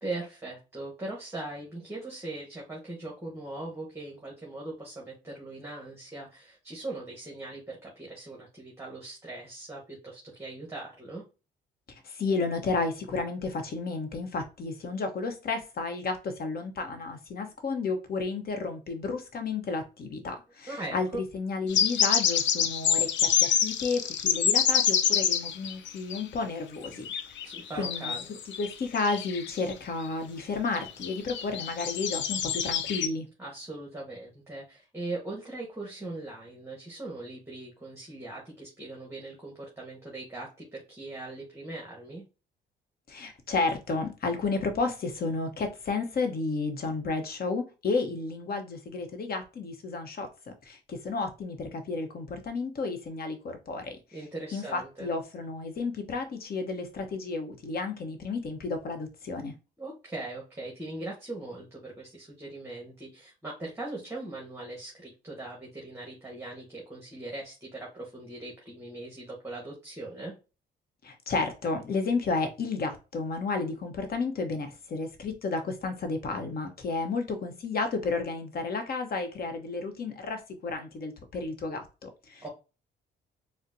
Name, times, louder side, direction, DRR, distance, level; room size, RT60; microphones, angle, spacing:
voice 1, 0.0-11.2 20.7-21.2 27.4-28.4 33.4-42.2 54.1-55.1 59.8-70.3 82.4-82.5, right 2 dB, 10° right, 1.1 m, -40 dB
voice 2, 12.0-27.1 27.8-28.2 28.6-33.2 43.1-54.0 54.5-59.5 71.0-82.4, left 3 dB, 50° left, 0.9 m, -32 dB
sound 1, 21.7-26.2 26.8-29.7 30.0-30.1 30.7-33.1, left 8 dB, 70° left, 0.5 m, -27 dB
4.0 x 2.1 x 2.6 m
cardioid pair, 90°, 20 cm